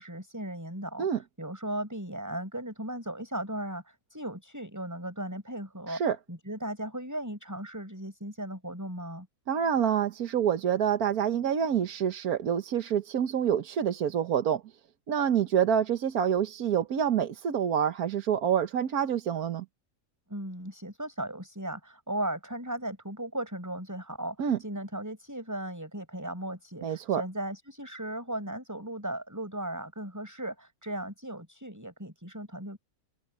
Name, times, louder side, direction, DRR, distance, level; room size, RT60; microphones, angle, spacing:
voice 1, 0.0-9.3 20.3-32.8, right 1 dB, 10° right, 6.3 m, -37 dB
voice 2, 9.5-14.6 15.1-19.6 24.4-24.6 26.8-27.2, right 8 dB, 80° right, 1.6 m, -27 dB
open air
omnidirectional pair, 1.5 m